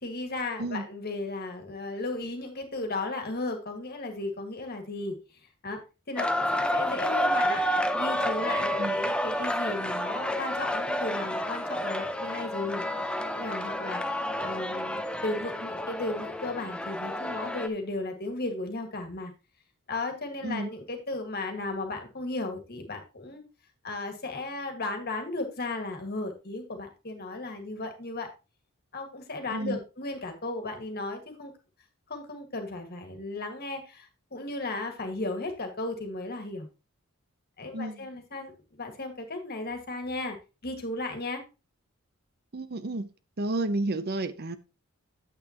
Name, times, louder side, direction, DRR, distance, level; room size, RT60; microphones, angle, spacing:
voice 1, 0.0-5.2 5.6-5.8 6.1-12.8 13.3-19.3 19.9-23.4 23.8-28.3 28.9-31.5 32.1-36.7 37.6-40.4 40.6-41.4, left 2 dB, 45° left, 1.9 m, -35 dB
sound 1, 6.2-17.7, equal, 5° left, 0.6 m, -30 dB
voice 2, 37.7-38.1 42.5-43.1 43.4-44.6, right 2 dB, 45° right, 0.7 m, -31 dB
9.1 x 8.4 x 2.9 m
head